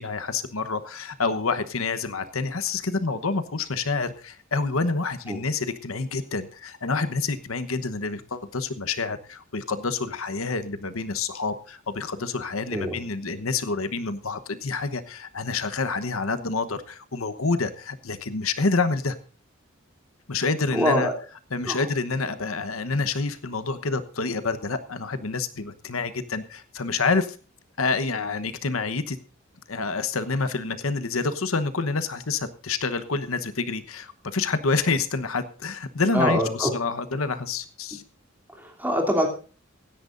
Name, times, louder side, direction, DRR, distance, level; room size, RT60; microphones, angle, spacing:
voice 1, 0.0-19.2 20.3-21.1 21.5-27.4 27.8-29.2 29.7-38.0, left 4 dB, 90° left, 11 dB, 1.1 m, -28 dB
voice 2, 20.7-21.1 21.7-21.8 36.1-36.7 38.5-39.3, equal, 10° right, 1 dB, 3.1 m, -24 dB
24.5 x 10.5 x 2.6 m, 0.39 s
head